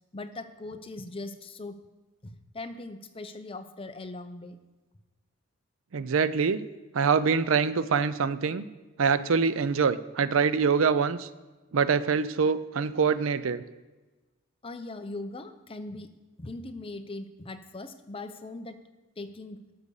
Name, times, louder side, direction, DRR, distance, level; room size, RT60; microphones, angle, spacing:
voice 1, 0.1-1.8 2.2-4.6 14.6-16.1 16.4-18.8 19.2-19.6, left 2 dB, 25° left, 8 dB, 0.7 m, -40 dB
voice 2, 5.9-6.6 6.9-8.6 9.0-11.3 11.7-13.6, right 5 dB, 70° right, 15 dB, 0.5 m, -24 dB
12.0 x 6.8 x 6.5 m, 1.2 s
head